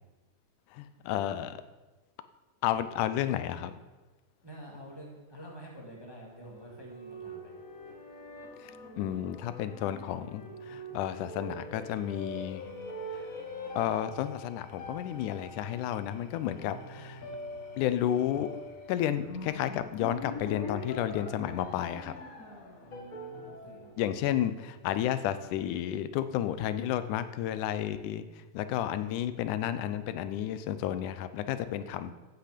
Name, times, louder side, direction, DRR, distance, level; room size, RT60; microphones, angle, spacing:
voice 1, 0.7-1.6 2.6-3.7 8.6-12.7 13.1-13.3 13.8-17.2 17.8-18.5 18.9-22.2 24.0-32.1, left 11 dB, 90° left, 12 dB, 2.2 m, -32 dB
voice 2, 4.4-7.5 22.8-23.9, right 1 dB, 10° right, -1 dB, 1.5 m, -48 dB
sound 1, 6.3-24.9, left 1 dB, 40° left, 1.2 m, -44 dB
Engine / Tools, 11.7-20.0, left 1 dB, 65° left, 2.5 m, -57 dB
14.5 x 8.3 x 5.1 m, 1.2 s
omnidirectional pair, 3.5 m